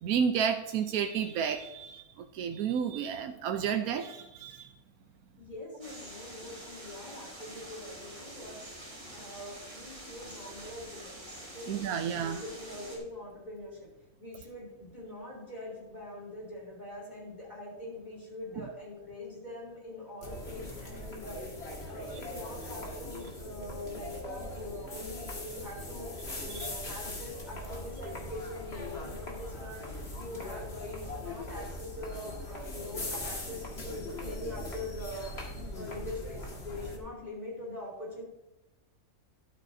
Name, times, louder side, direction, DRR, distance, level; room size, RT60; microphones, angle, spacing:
voice 1, 0.0-4.7 11.7-12.4 18.6-18.7 26.5-26.7, right 7 dB, 85° right, 6 dB, 1.1 m, -31 dB
voice 2, 5.3-8.6 9.1-13.9 14.2-21.6 21.9-38.2, left 1 dB, 30° left, -3 dB, 3.8 m, -43 dB
sound 1, 5.8-13.0, right 1 dB, 40° right, 4.3 m, -46 dB
sound 2, 20.2-37.0, left 1 dB, 45° left, 2.2 m, -40 dB
13.0 x 11.5 x 2.7 m, 0.99 s
omnidirectional pair, 1.5 m